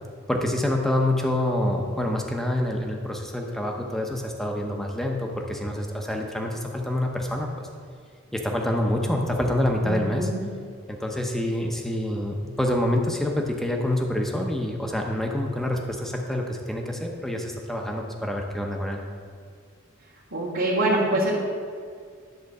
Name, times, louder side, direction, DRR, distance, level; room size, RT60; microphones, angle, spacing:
voice 1, 0.3-7.7 8.3-10.3 10.9-19.0, left 1 dB, ahead, 1 dB, 0.8 m, -27 dB
voice 2, 9.8-10.5 20.3-21.4, right 1 dB, 70° right, -9 dB, 1.7 m, -24 dB
10.5 x 3.9 x 6.6 m, 2.1 s
head